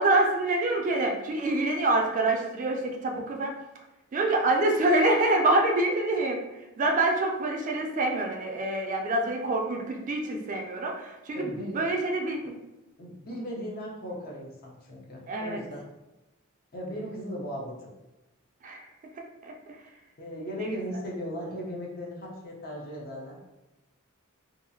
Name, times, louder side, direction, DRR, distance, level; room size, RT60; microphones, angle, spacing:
voice 1, 0.0-3.6 4.1-6.4 6.8-12.6 15.3-15.6 18.6-18.8 19.4-19.8 20.6-20.8, right 2 dB, 35° right, 1 dB, 0.3 m, -26 dB
voice 2, 11.4-11.8 13.0-15.8 16.7-17.8 20.2-23.4, equal, 45° left, -2 dB, 0.6 m, -37 dB
2.7 x 2.3 x 2.6 m, 1.0 s
head